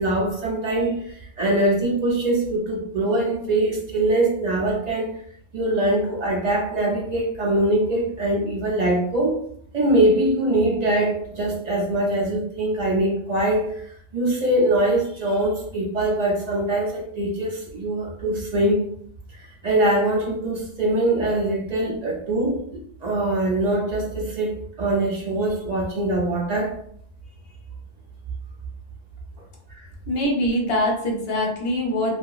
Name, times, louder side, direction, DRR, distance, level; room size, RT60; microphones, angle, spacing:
voice 1, 0.0-5.1 5.5-9.4 9.7-13.8 14.1-18.9 19.6-22.6 23.0-26.7 29.7-29.8, right 1 dB, 45° right, -1 dB, 0.6 m, -22 dB
voice 2, 30.1-32.2, left 1 dB, 55° left, 0 dB, 0.9 m, -23 dB
2.9 x 2.4 x 2.3 m, 0.63 s
omnidirectional pair, 1.3 m